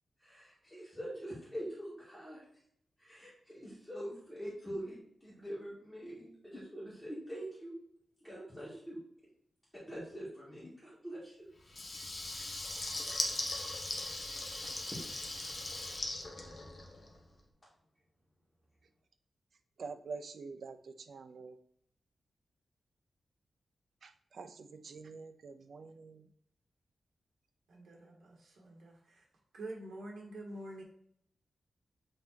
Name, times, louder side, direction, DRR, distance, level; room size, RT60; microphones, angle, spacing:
voice 1, 0.2-2.4 3.0-7.7 8.2-9.0 9.8-11.5 12.3-12.5 14.5-14.9, equal, 5° left, 2.5 m, -44 dB
Water tap faucet / Liquid, 11.7-17.2, left 2 dB, 30° left, 1.1 m, -39 dB
voice 2, 19.8-20.8 21.1-21.5 24.0-26.2, right 4 dB, 60° right, 0.6 m, -46 dB
voice 3, 27.7-29.2 29.5-30.8, right 1 dB, 80° right, 1.7 m, -47 dB
6.6 x 4.0 x 4.5 m
wide cardioid pair, 170°, 0 cm